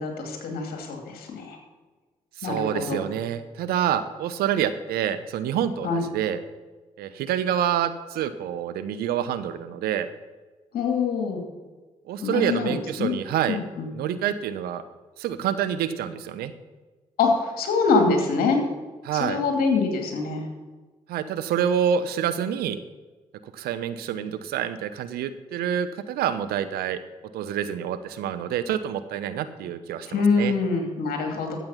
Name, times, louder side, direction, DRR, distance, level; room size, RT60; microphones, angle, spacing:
voice 1, 0.0-1.6 2.4-3.1 5.8-6.0 10.7-11.4 12.2-13.1 13.5-13.9 17.2-18.6 19.2-20.4 30.1-31.6, left 4 dB, 75° left, 3 dB, 2.5 m, -24 dB
voice 2, 2.4-6.4 7.0-10.1 12.1-13.6 13.9-14.8 15.2-16.5 19.0-19.4 21.1-22.8 23.5-27.0 27.3-30.5, right 9 dB, 80° right, 12 dB, 0.8 m, -27 dB
13.0 x 7.7 x 5.7 m, 1.3 s
hypercardioid pair, 45°, 16 cm